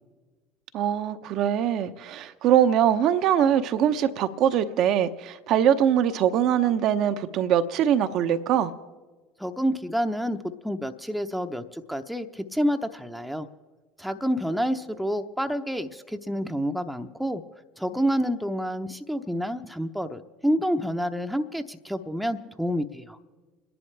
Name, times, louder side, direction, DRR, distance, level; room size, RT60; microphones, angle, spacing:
voice 1, 0.7-8.7, right 9 dB, 55° right, 0.8 m, -22 dB
voice 2, 9.4-10.4 10.6-13.5 14.0-17.4 17.8-23.2, equal, ahead, 0.8 m, -28 dB
29.5 x 11.0 x 3.4 m
hypercardioid pair, 70°, 0 cm